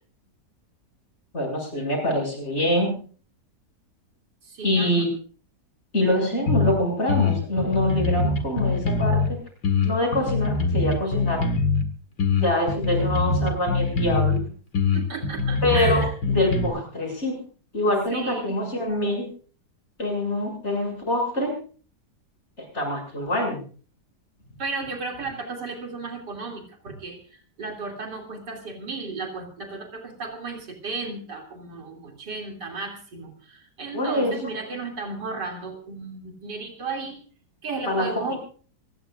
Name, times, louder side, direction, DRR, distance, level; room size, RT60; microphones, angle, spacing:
voice 1, 1.3-3.0 4.6-5.1 5.9-9.4 9.8-11.5 12.4-14.4 15.6-17.4 17.7-19.3 20.0-21.5 22.7-23.6 33.9-34.5 37.9-38.4, left 1 dB, 40° left, 1 dB, 7.7 m, -25 dB
voice 2, 4.4-5.1 14.9-16.1 18.1-18.6 24.6-37.2 37.6-38.3, right 3 dB, 90° right, 2 dB, 3.5 m, -34 dB
sound 1, 6.5-6.7 7.1-9.3 9.6-11.9 12.2-14.4 14.7-16.7, left 4 dB, 85° left, 2.6 m, -23 dB
27.0 x 16.5 x 2.5 m, 0.41 s
omnidirectional pair, 1.8 m